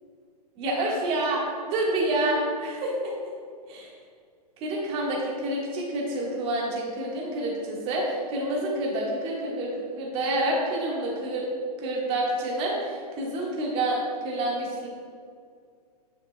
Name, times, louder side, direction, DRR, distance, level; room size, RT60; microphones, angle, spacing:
voice 1, 0.6-1.4 1.7-2.9 3.7-3.9 4.6-11.4 11.8-14.0 14.2-14.9, right 1 dB, 25° right, -3 dB, 1.5 m, -28 dB
9.9 x 5.2 x 2.2 m, 2.2 s
figure-of-eight pair, 110°, 20 cm